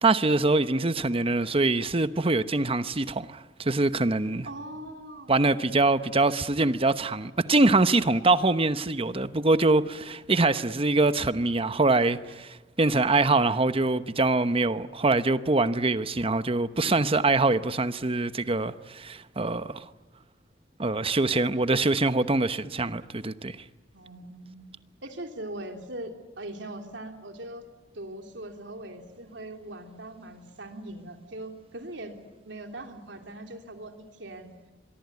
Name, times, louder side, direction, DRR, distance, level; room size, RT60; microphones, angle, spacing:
voice 1, 0.0-4.5 5.3-19.8 20.8-23.6, right 2 dB, 30° right, 1.0 m, -24 dB
voice 2, 4.5-5.3 12.2-12.3 23.9-24.6 25.0-27.7 27.9-32.1 32.4-34.5, right 1 dB, 80° right, 3.2 m, -40 dB
25.0 x 23.0 x 9.5 m
head